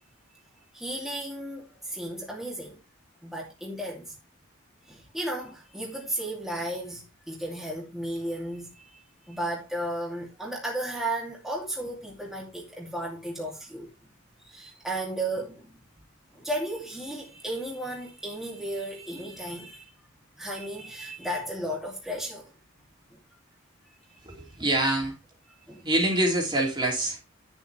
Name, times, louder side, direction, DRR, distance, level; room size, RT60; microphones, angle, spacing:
voice 1, 0.7-2.8 3.2-4.2 4.9-9.0 9.3-14.1 14.4-15.7 16.3-19.9 20.4-22.5 23.1-23.2 25.7-25.9, right 1 dB, ahead, 2.5 m, -34 dB
voice 2, 24.2-25.1 25.8-27.2, right 1 dB, 20° right, 2.8 m, -25 dB
11.5 x 7.1 x 3.4 m
head